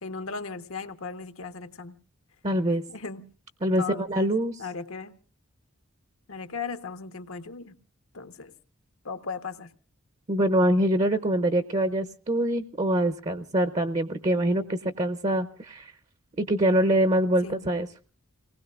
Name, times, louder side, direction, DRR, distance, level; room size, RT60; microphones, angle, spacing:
voice 1, 0.0-1.9 2.9-3.3 3.8-4.3 4.6-5.1 6.3-7.8 8.1-8.5 9.0-9.7 17.4-17.6, left 4 dB, 75° left, 1.2 m, -37 dB
voice 2, 2.4-2.8 3.6-4.6 10.3-15.9 16.4-17.9, right 1 dB, 30° right, 0.7 m, -24 dB
29.5 x 19.5 x 2.4 m
head